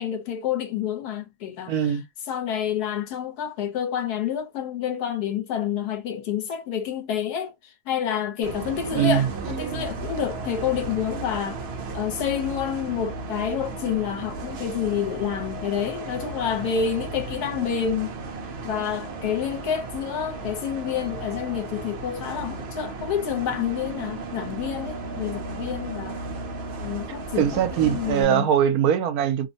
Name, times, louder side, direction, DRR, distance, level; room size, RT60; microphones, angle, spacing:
voice 1, 0.0-2.0 2.3-11.6 11.9-18.1 18.6-26.2 26.8-28.5, left 8 dB, 80° left, 1.3 m, -28 dB
voice 2, 1.7-2.0 8.9-9.3 27.4-29.5, right 9 dB, 75° right, 1.1 m, -21 dB
Bus, 8.4-28.2, right 3 dB, 60° right, 0.7 m, -35 dB
2.9 x 2.1 x 2.7 m
omnidirectional pair, 1.6 m